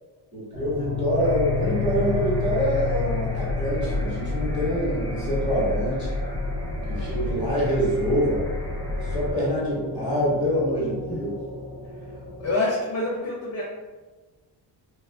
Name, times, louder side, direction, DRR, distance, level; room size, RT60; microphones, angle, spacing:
voice 1, 0.3-6.1 6.9-8.4 9.0-11.3, equal, 10° right, -9 dB, 1.1 m, -25 dB
sound 1, 0.5-12.5, left 5 dB, 60° right, 1.2 m, -33 dB
sound 2, 1.2-9.3, left 2 dB, 5° left, 0.7 m, -30 dB
voice 2, 12.4-13.6, left 2 dB, 40° left, -4 dB, 0.4 m, -26 dB
3.1 x 2.3 x 2.2 m, 1.3 s
cardioid pair, 160°, 43 cm